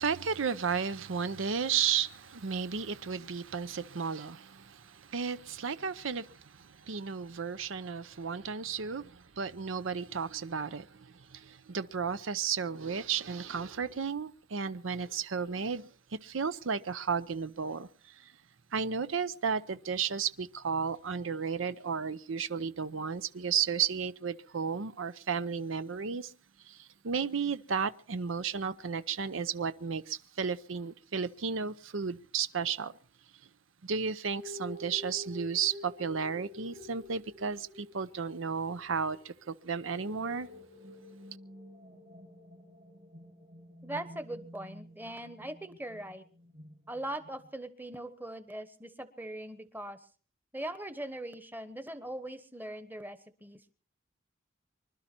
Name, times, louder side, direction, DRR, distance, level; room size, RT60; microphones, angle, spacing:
voice 1, 0.0-18.3 18.7-26.3 26.6-32.9 33.8-40.5, right 6 dB, 80° right, 0.7 m, -33 dB
sound 1, 34.3-47.5, left 2 dB, 40° right, 2.5 m, -49 dB
voice 2, 43.8-46.2 46.9-50.0 50.5-53.7, right 1 dB, 10° right, 1.1 m, -41 dB
25.0 x 12.0 x 4.5 m
head